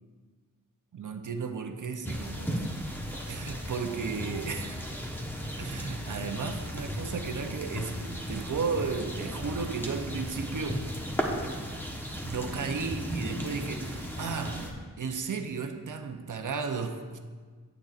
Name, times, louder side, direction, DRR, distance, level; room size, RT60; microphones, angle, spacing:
voice 1, 0.9-2.6 3.3-4.8 5.6-10.9 12.2-14.7 15.0-17.2, right 5 dB, 65° right, 6 dB, 0.7 m, -34 dB
sound 1, 2.0-14.7, equal, 5° left, 1.1 m, -35 dB
9.1 x 8.5 x 2.5 m, 1.5 s
wide cardioid pair, 75°, 32 cm